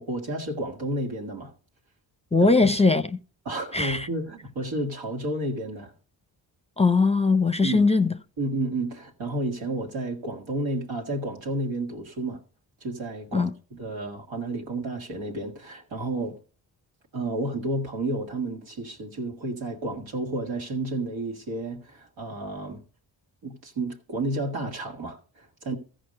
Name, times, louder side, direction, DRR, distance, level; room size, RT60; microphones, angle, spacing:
voice 1, 0.0-1.5 2.4-2.7 3.5-5.9 7.6-7.9 8.4-12.4 12.8-16.4 17.1-22.8 23.4-25.8, right 2 dB, 85° right, 2.0 m, -31 dB
voice 2, 2.3-3.2 3.7-4.1 6.8-8.1 13.3-13.5, left 3 dB, 15° left, 0.6 m, -20 dB
14.5 x 5.0 x 6.4 m
supercardioid pair, 50°, 44 cm